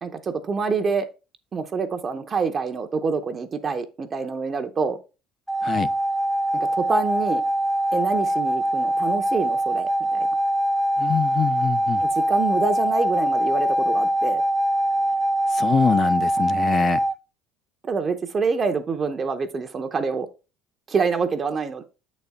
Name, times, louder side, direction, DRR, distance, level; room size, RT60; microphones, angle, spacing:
voice 1, 0.0-1.1 1.5-5.0 6.5-7.4 7.9-10.3 12.0-14.4 17.8-20.3 20.9-21.8, right 4 dB, 35° right, 0.7 m, -26 dB
sound 1, 5.5-17.1, right 1 dB, ahead, 0.7 m, -23 dB
voice 2, 11.0-12.0 15.5-17.0, left 6 dB, 40° left, 0.4 m, -24 dB
7.8 x 4.1 x 3.5 m
supercardioid pair, 85°, 0 cm